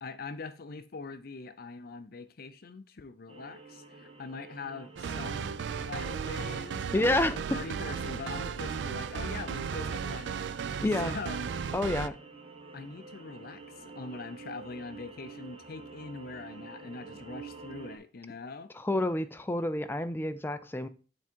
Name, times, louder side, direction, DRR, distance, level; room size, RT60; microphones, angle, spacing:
voice 1, 0.0-10.7 11.0-11.5 11.8-12.1 12.7-18.7, left 4 dB, 55° left, 0.6 m, -43 dB
sound 1, 3.3-18.0, right 4 dB, 35° right, 1.2 m, -49 dB
sound 2, 5.0-12.1, right 6 dB, 70° right, 0.4 m, -35 dB
voice 2, 6.9-7.4 10.8-11.2 11.7-12.2 18.8-20.9, left 1 dB, 10° left, 0.4 m, -29 dB
8.5 x 3.5 x 4.4 m
head